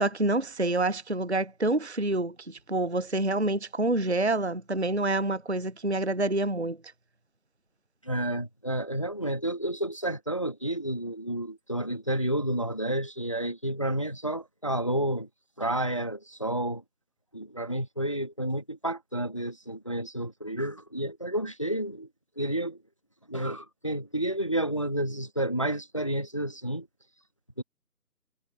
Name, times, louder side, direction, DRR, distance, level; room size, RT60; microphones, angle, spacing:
voice 1, 0.0-6.8, right 2 dB, 50° right, 0.5 m, -27 dB
voice 2, 8.0-15.3 15.6-16.8 17.3-22.1 22.4-22.8 23.3-26.9 27.6-27.7, right 1 dB, 20° left, 1.3 m, -30 dB
figure-of-eight pair, 165°, 46 cm